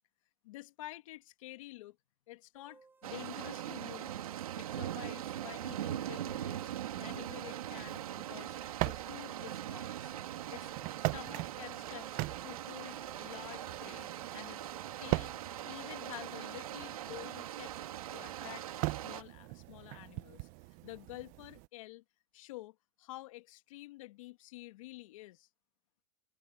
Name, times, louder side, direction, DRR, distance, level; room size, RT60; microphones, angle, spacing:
voice 1, 0.4-2.0 2.3-6.7 7.0-8.6 8.8-10.1 10.5-10.7 11.1-14.1 14.3-14.6 15.0-15.4 15.6-17.7 18.1-20.5 20.8-22.0 22.3-25.5, left 18 dB, 65° left, 2.1 m, -49 dB
sound 1, 2.5-14.2, right 4 dB, 10° right, 5.6 m, -61 dB
sound 2, 3.0-19.2, right 12 dB, 90° right, 2.9 m, -41 dB
sound 3, 5.1-21.7, right 23 dB, 45° right, 1.0 m, -42 dB
supercardioid pair, 140°, 18 cm